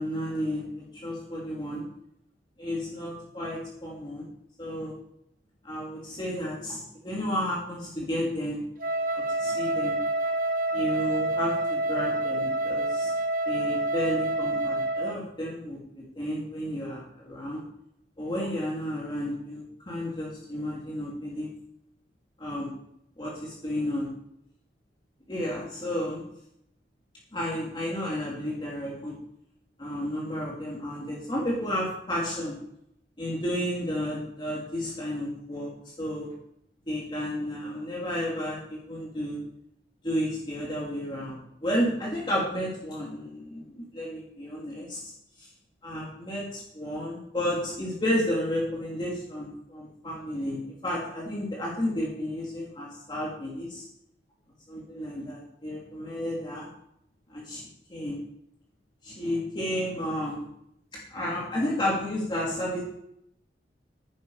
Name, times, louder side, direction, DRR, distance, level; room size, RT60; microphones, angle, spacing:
voice 1, 0.0-1.9 2.6-4.3 4.6-4.9 5.6-8.6 9.1-10.0 10.7-13.1 13.5-15.8 16.2-17.6 18.2-21.5 22.4-22.7 23.2-24.1 25.3-26.2 27.3-29.1 29.8-32.6 33.2-36.3 36.9-39.4 40.0-45.0 45.4-45.5 45.8-53.9 54.7-56.7 57.3-57.6 57.9-58.2 59.0-60.5 61.1-62.8, equal, 25° left, -5 dB, 2.8 m, -32 dB
Wind instrument woodwind instrument, 8.8-15.2, right 2 dB, 50° right, 1.1 m, -28 dB
10.5 x 10.5 x 4.8 m, 0.75 s
head